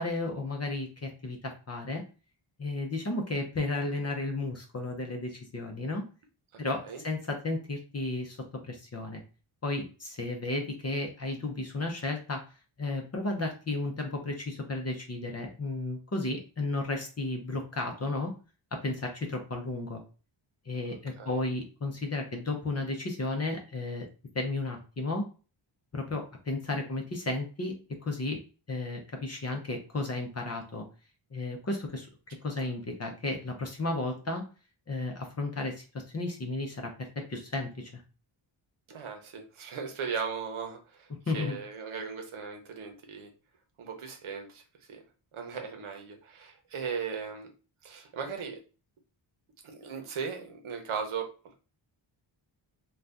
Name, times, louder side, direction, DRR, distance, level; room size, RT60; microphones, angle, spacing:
voice 1, 0.0-2.0 2.6-6.0 6.6-8.4 8.6-9.2 9.6-12.4 12.8-18.3 18.7-20.0 20.7-24.1 24.3-25.3 25.9-27.7 28.0-28.4 28.7-30.8 31.3-32.1 32.4-34.4 34.9-35.8 36.1-36.9 37.3-38.0 41.3-41.6, left 2 dB, 30° left, 2 dB, 0.6 m, -33 dB
voice 2, 6.5-7.0 21.2-21.4 38.9-43.3 43.8-44.6 44.9-45.0 45.3-47.5 47.8-48.6 49.6-51.3, right 6 dB, 75° right, 4 dB, 0.9 m, -37 dB
2.6 x 2.3 x 3.4 m, 0.35 s
wide cardioid pair, 150°, 50 cm